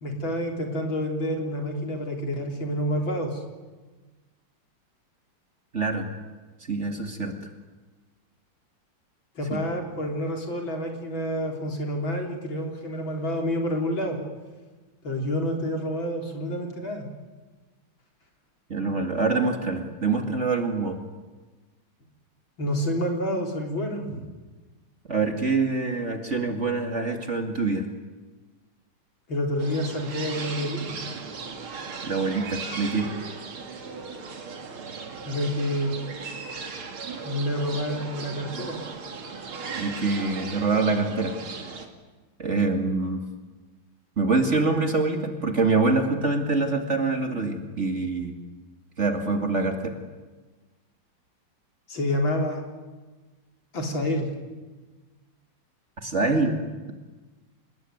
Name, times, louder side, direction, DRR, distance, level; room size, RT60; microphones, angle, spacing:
voice 1, 0.0-3.4 9.4-14.2 15.0-17.1 22.6-24.2 29.3-31.0 35.3-35.9 37.2-38.8 51.9-52.6 53.7-54.3, equal, 65° left, 2 dB, 4.4 m, -28 dB
voice 2, 5.7-6.1 6.7-7.3 9.5-9.6 18.7-21.0 25.1-27.9 32.0-33.1 39.7-41.7 42.4-43.2 44.2-48.3 49.0-49.9 56.0-56.6, right 3 dB, 35° right, 4 dB, 2.5 m, -25 dB
sound 1, 29.6-41.9, right 4 dB, 75° right, 3.2 m, -37 dB
27.5 x 21.0 x 9.4 m, 1.3 s
omnidirectional pair, 2.4 m